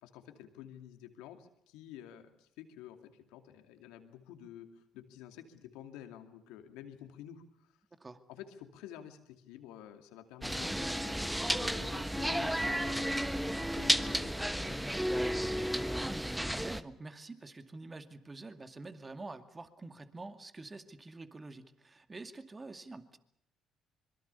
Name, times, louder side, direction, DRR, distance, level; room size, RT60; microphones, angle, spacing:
voice 1, 0.0-7.4 8.3-14.9, left 10 dB, 80° left, 7 dB, 2.5 m, -50 dB
sound 1, 10.4-16.8, equal, 5° right, 1.3 m, -32 dB
voice 2, 15.4-23.2, right 3 dB, 25° right, 9 dB, 2.3 m, -47 dB
25.5 x 22.5 x 7.0 m, 0.75 s
hypercardioid pair, 60°, 0 cm